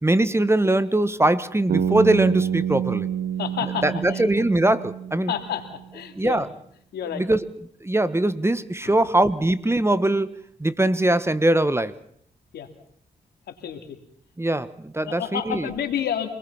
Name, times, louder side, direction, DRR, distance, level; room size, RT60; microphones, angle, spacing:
voice 1, 0.0-3.1 3.8-5.3 6.2-6.5 7.1-7.4 7.8-11.9 14.4-15.7, right 1 dB, 15° right, 15 dB, 1.5 m, -21 dB
Bass guitar, 1.7-5.8, right 8 dB, 85° right, 2.7 m, -28 dB
voice 2, 3.4-4.2 5.3-5.7 5.9-6.5 6.9-7.2 8.8-9.0 12.5-12.7 13.5-14.0 14.5-14.6 15.1-16.3, left 9 dB, 90° left, 6 dB, 3.0 m, -30 dB
27.0 x 20.5 x 5.8 m, 0.67 s
cardioid pair, 60°, 16 cm